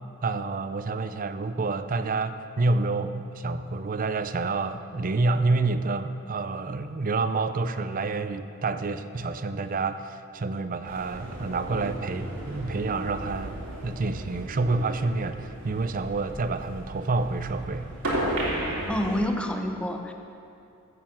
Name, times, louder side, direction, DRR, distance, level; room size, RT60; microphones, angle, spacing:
voice 1, 0.2-17.9, right 3 dB, 40° right, 11 dB, 0.5 m, -28 dB
sound 1, 10.9-19.2, right 1 dB, 65° right, 2.8 m, -34 dB
voice 2, 18.7-20.1, equal, 5° left, 4 dB, 0.8 m, -28 dB
14.5 x 6.9 x 7.2 m, 2.6 s
head